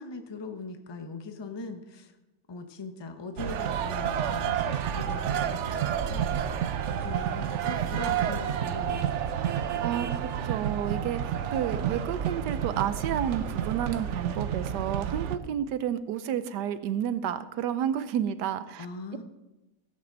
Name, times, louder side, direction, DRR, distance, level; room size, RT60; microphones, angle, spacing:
voice 1, 0.0-2.2 2.5-6.3 6.9-9.1 18.8-19.2, left 3 dB, 25° left, 6 dB, 0.6 m, -40 dB
sound 1, 3.4-15.4, right 9 dB, 60° right, 0.7 m, -30 dB
voice 2, 10.4-18.9, right 9 dB, 85° right, 13 dB, 1.3 m, -30 dB
16.0 x 8.8 x 4.0 m, 1.0 s
omnidirectional pair, 1.8 m